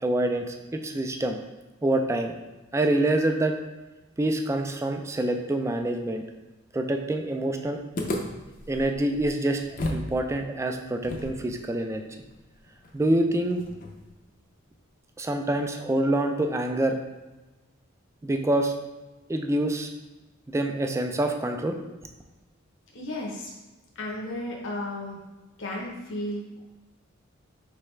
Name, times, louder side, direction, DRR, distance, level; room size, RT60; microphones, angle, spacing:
voice 1, 0.0-1.4 1.8-2.3 2.7-3.5 4.2-6.2 6.7-7.8 8.7-9.6 9.9-12.0 12.9-13.6 15.2-17.0 18.2-18.7 19.3-19.9 20.5-21.8, right 1 dB, 15° right, 4 dB, 0.3 m, -26 dB
sound 1, 8.0-10.1 10.4-10.5 11.0-14.2, left 1 dB, 40° left, 0.5 m, -35 dB
voice 2, 22.9-23.5 24.0-25.2 25.6-26.6, left 1 dB, 65° left, -2 dB, 0.8 m, -34 dB
4.7 x 3.4 x 3.2 m, 1.1 s
head